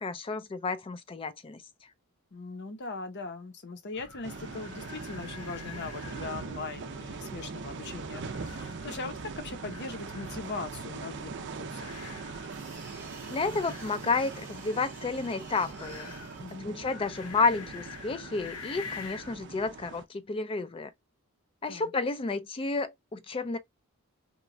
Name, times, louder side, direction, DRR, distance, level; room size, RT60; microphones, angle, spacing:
voice 1, 0.0-1.6 13.3-16.1 16.6-20.9 21.6-23.6, left 4 dB, 25° left, 0.3 m, -31 dB
voice 2, 2.3-12.0 16.4-16.7 21.7-21.9, left 3 dB, 50° left, 0.7 m, -40 dB
sound 1, 3.9-19.4, left 5 dB, 85° left, 0.8 m, -48 dB
sound 2, 4.2-20.0, right 4 dB, 50° right, 0.4 m, -41 dB
sound 3, 12.2-16.5, right 2 dB, 10° right, 0.9 m, -52 dB
3.0 x 2.2 x 2.5 m
head